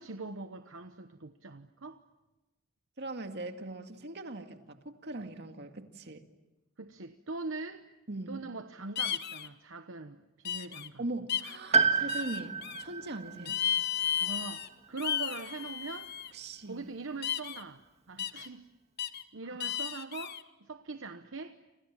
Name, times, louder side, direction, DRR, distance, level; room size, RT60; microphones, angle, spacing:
voice 1, 0.0-2.0 6.8-7.9 8.3-11.0 13.3-13.5 14.2-16.1 16.6-18.7 19.1-21.6, right 3 dB, 70° right, 8 dB, 1.0 m, -42 dB
voice 2, 3.0-6.3 8.1-8.4 11.0-13.5 16.3-16.9 19.5-19.6, right 2 dB, 55° right, 6 dB, 2.1 m, -40 dB
sound 1, 9.0-9.5 10.4-10.9 11.3-11.6 12.1-12.8 13.5-14.7 15.0-16.3 17.2-17.6 18.2-18.5 19.0-19.2 19.6-20.4, left 9 dB, 55° left, 1.2 m, -34 dB
Piano, 11.7-15.6 15.9-16.0 17.1-17.2, right 5 dB, 35° right, 1.8 m, -31 dB
29.5 x 26.5 x 7.4 m, 1.1 s
head